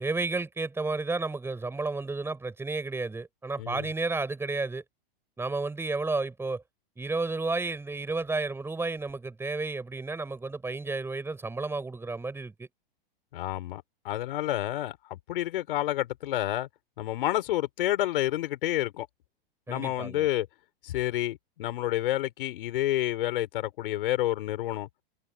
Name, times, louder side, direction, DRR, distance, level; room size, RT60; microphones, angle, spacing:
voice 1, 0.0-4.8 5.4-6.6 7.0-12.7 19.7-20.2, right 3 dB, 10° right, 6.7 m, -32 dB
voice 2, 13.3-16.7 17.0-19.1 19.7-20.5 20.8-24.9, left 14 dB, 70° left, 4.4 m, -29 dB
hypercardioid pair, 135°, 29 cm